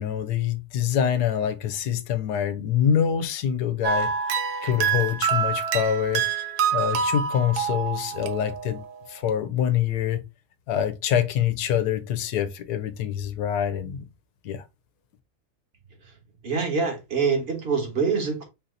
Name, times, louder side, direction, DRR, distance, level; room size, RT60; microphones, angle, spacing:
voice 1, 0.0-4.1 4.6-6.2 6.7-8.8 9.1-10.2 10.7-14.0 14.4-14.6, left 9 dB, 85° left, 1.3 m, -25 dB
sound 1, 3.8-9.0, right 7 dB, 80° right, 1.3 m, -26 dB
voice 2, 16.4-18.5, right 5 dB, 40° right, 1.4 m, -25 dB
4.7 x 2.8 x 3.8 m
omnidirectional pair, 1.6 m